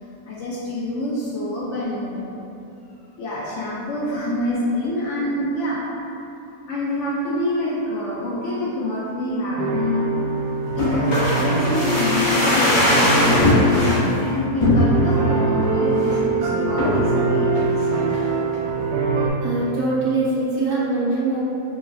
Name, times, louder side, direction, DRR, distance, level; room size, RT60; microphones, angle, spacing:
voice 1, 0.2-2.4 3.2-5.8 6.7-10.2 10.8-17.8, left 1 dB, 70° left, -6 dB, 0.6 m, -26 dB
sound 1, 9.6-19.3, right 3 dB, 90° right, 1.2 m, -23 dB
sound 2, 10.8-14.0 14.6-15.2 15.6-15.7 16.0-16.3 16.8-17.1 17.6-18.3 18.5-18.6, left 1 dB, 45° left, 1.0 m, -20 dB
voice 2, 19.4-21.4, right 2 dB, 50° right, -9 dB, 1.0 m, -22 dB
3.3 x 2.2 x 3.3 m, 2.8 s
omnidirectional pair, 1.7 m